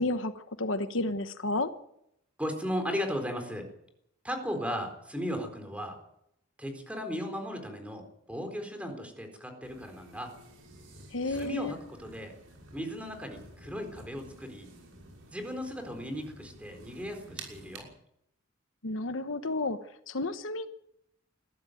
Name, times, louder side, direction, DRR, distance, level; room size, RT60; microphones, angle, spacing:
voice 1, 0.0-1.7 11.1-11.7 18.8-19.8 20.1-20.7, left 2 dB, 70° left, 10 dB, 1.1 m, -31 dB
voice 2, 2.4-3.7 4.2-6.0 6.6-10.3 11.3-12.3 12.7-14.7 15.3-17.9, equal, 5° right, 5 dB, 4.0 m, -36 dB
sound 1, 9.6-17.8, right 2 dB, 80° right, 6.2 m, -50 dB
21.0 x 14.5 x 9.2 m, 0.79 s
head